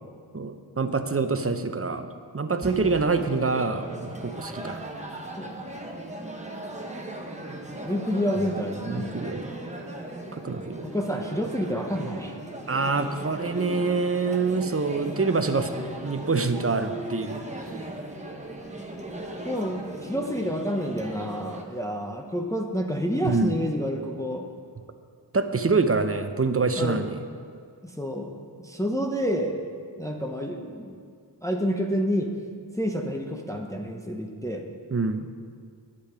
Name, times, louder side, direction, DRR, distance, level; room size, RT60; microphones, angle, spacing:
voice 1, 0.3-4.9 8.8-9.5 10.3-10.8 12.7-17.7 23.2-23.6 25.3-27.1 34.9-35.3, right 4 dB, 30° right, 9 dB, 0.7 m, -26 dB
sound 1, 2.6-21.6, right 1 dB, 15° right, 1.3 m, -38 dB
voice 2, 5.4-5.8 7.8-9.2 10.8-12.4 17.8-18.0 19.4-24.5 26.7-27.1 27.8-29.6 30.0-31.0 31.4-32.3 32.7-34.7, equal, 5° left, 2 dB, 0.8 m, -29 dB
10.0 x 8.5 x 5.0 m, 2.2 s
wide cardioid pair, 50°, 44 cm